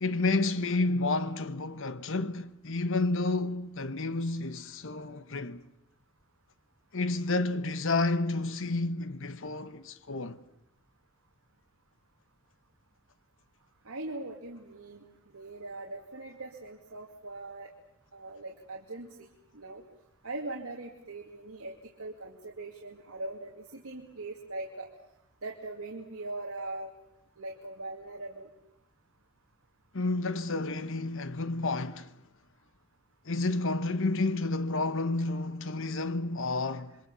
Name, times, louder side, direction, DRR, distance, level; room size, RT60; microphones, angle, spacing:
voice 1, 0.0-5.6 6.9-10.4 29.9-32.1 33.3-37.0, left 2 dB, 65° left, 1.2 m, -30 dB
voice 2, 13.9-15.0 15.3-17.7 18.1-19.3 19.5-19.8 20.2-21.7 22.0-24.9 25.4-26.9 27.4-28.5, right 2 dB, 80° right, 2.3 m, -41 dB
29.0 x 23.5 x 7.0 m
head